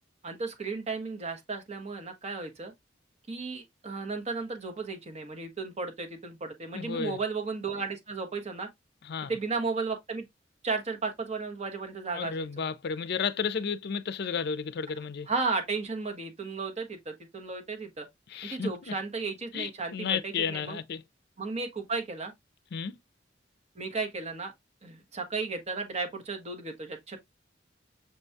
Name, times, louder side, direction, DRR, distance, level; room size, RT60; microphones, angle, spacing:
voice 1, 0.2-2.7 3.3-8.7 9.3-10.2 10.6-12.5 15.3-18.1 18.4-20.8 21.4-22.3 23.8-24.5 24.8-27.2, right 4 dB, 35° right, 0.9 m, -34 dB
voice 2, 6.7-7.2 9.0-9.3 12.1-15.3 18.3-19.0 19.5-21.0 22.7-23.0, left 6 dB, 60° left, 0.4 m, -32 dB
6.7 x 2.3 x 2.6 m
head